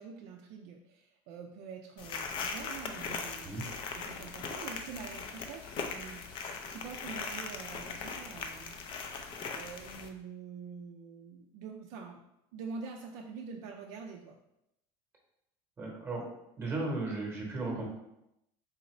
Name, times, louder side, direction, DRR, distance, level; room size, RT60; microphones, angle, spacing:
voice 1, 0.0-3.5 3.9-6.4 6.7-9.1 9.5-12.2 12.5-14.4, right 5 dB, 70° right, 1 dB, 0.4 m, -46 dB
sound 1, 2.0-10.1, left 5 dB, 40° left, 0.4 m, -40 dB
voice 2, 15.8-16.3 16.6-17.8, right 2 dB, 20° right, -1 dB, 0.9 m, -35 dB
4.0 x 2.5 x 3.1 m, 0.84 s
cardioid pair, 140°, 13 cm